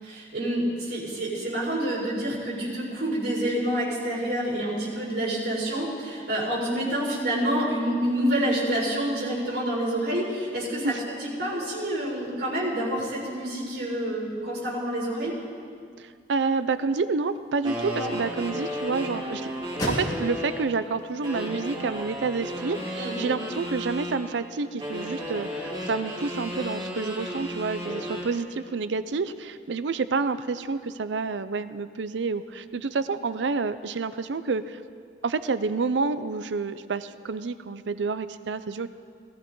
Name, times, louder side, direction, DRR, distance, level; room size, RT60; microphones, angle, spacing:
voice 1, 0.0-10.9 11.2-15.4 18.0-18.2 23.0-23.1, right 1 dB, 65° right, -6 dB, 4.7 m, -28 dB
voice 2, 16.0-19.5 19.9-34.8 35.2-38.9, right 4 dB, 80° right, 13 dB, 0.5 m, -29 dB
sound 1, 16.2-22.4, equal, 25° left, 2.6 m, -39 dB
sound 2, 17.6-20.7 21.2-24.2 24.8-28.3, equal, 30° right, 3.2 m, -33 dB
18.0 x 14.0 x 3.9 m, 2.2 s
head